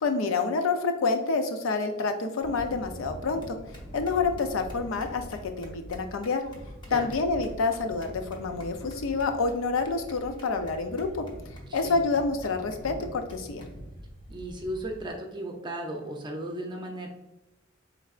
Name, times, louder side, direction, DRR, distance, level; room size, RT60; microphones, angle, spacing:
voice 1, 0.0-3.6 3.9-6.4 6.9-11.2 11.7-13.7, left 4 dB, 80° left, 6 dB, 0.4 m, -28 dB
sound 1, 2.4-15.1, equal, 25° left, 0.8 m, -44 dB
voice 2, 11.7-12.0 14.3-17.1, right 1 dB, 25° right, 2 dB, 0.5 m, -36 dB
4.7 x 3.3 x 2.4 m, 1.0 s
head